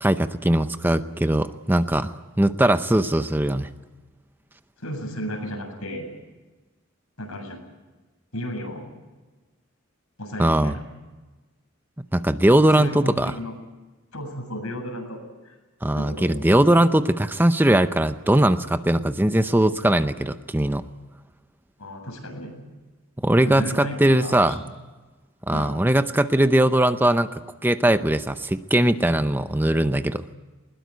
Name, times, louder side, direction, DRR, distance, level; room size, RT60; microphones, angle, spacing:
voice 1, 0.0-3.7 10.4-10.7 12.1-13.3 15.8-20.9 23.2-24.6 25.5-27.3 27.6-30.2, right 1 dB, 10° right, 10 dB, 0.7 m, -20 dB
voice 2, 4.8-6.1 7.2-7.6 8.3-8.8 10.2-10.8 12.8-13.5 14.1-15.2 15.4-15.5 15.9-16.3 21.8-22.5 23.4-24.7 25.5-25.8, equal, 90° left, 3 dB, 7.7 m, -33 dB
20.5 x 20.5 x 9.3 m, 1.2 s
head